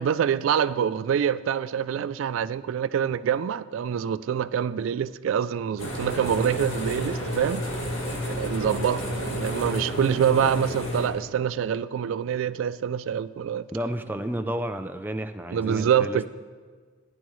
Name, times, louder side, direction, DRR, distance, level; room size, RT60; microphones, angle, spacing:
voice 1, 0.0-7.7 8.4-13.6 15.5-16.3, right 8 dB, 75° right, 16 dB, 0.3 m, -25 dB
sound 1, 5.8-11.1, equal, 85° left, 2.2 m, -31 dB
voice 2, 13.7-16.3, right 1 dB, 10° right, 7 dB, 0.4 m, -31 dB
15.5 x 10.5 x 3.1 m, 1.5 s
head